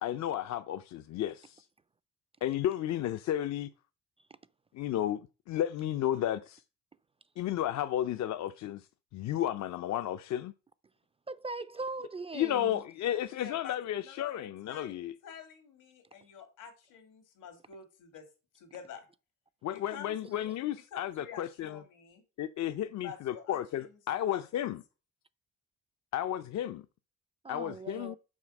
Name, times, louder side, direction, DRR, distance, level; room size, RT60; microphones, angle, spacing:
voice 1, 0.0-1.6 2.4-3.7 4.7-5.2 5.5-6.6 7.4-8.9 9.1-10.5 12.3-15.1 19.6-21.8 22.4-24.8 26.1-26.8 27.5-28.2, left 11 dB, 65° left, 0.5 m, -33 dB
voice 2, 11.3-12.8 27.4-28.2, right 3 dB, 20° right, 0.3 m, -40 dB
voice 3, 13.3-13.8 14.0-14.9 15.2-18.3 18.5-19.1 19.7-20.5 20.9-22.2 23.0-24.0 24.3-24.4, left 7 dB, 90° left, 2.3 m, -48 dB
6.2 x 4.0 x 6.3 m
cardioid pair, 90°, 30 cm